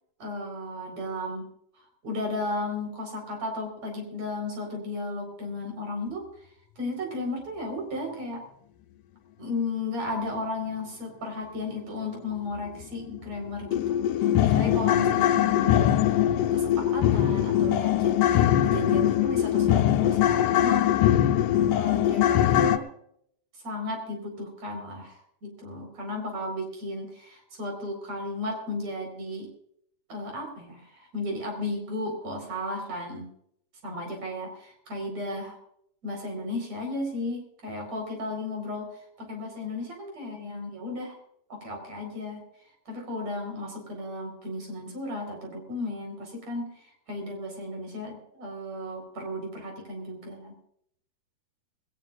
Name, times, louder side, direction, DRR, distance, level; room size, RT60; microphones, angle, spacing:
voice 1, 0.2-1.5 2.0-6.2 6.8-8.4 9.4-15.9 16.5-21.0 21.7-22.9 23.6-29.5 30.1-33.3 33.8-35.6 36.0-38.9 39.2-41.2 41.5-42.4 42.9-46.7 47.1-50.5, left 2 dB, 55° right, 3 dB, 5.5 m, -34 dB
sound 1, 12.8-12.9 13.3-13.4 13.7-22.8, left 11 dB, 85° left, 2.4 m, -22 dB
20.5 x 18.5 x 2.5 m, 0.71 s
omnidirectional pair, 3.6 m